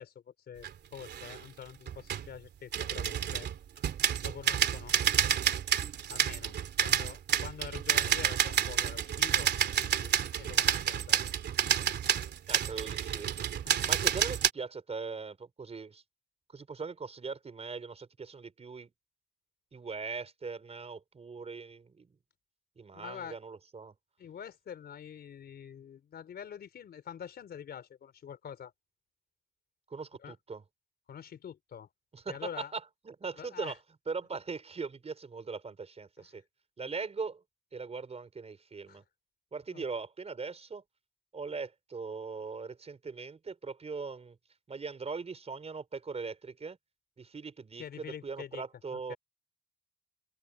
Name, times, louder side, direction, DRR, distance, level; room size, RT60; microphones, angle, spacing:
voice 1, 0.0-3.5 4.2-4.9 6.1-6.5 6.8-9.5 9.8-11.3 13.6-13.9 22.9-23.4 24.2-28.7 30.2-30.4 31.1-31.9 32.3-32.7 33.4-33.7 36.2-36.4 38.9-39.0 39.7-39.8 47.8-48.6 48.9-49.2, left 8 dB, 65° left, 4.3 m, -46 dB
sound 1, 0.6-0.7 1.0-1.4 1.9-2.3 2.7-14.5, right 9 dB, 70° right, 2.8 m, -29 dB
voice 2, 12.5-13.3 13.8-16.0 16.5-18.9 19.7-22.2 22.8-23.9 29.9-30.6 32.1-33.8 34.1-36.4 36.8-37.4 37.7-39.0 39.5-40.8 41.3-44.4 44.7-46.8 47.2-49.2, right 4 dB, 35° right, 4.5 m, -40 dB
open air
cardioid pair, 90°, 18 cm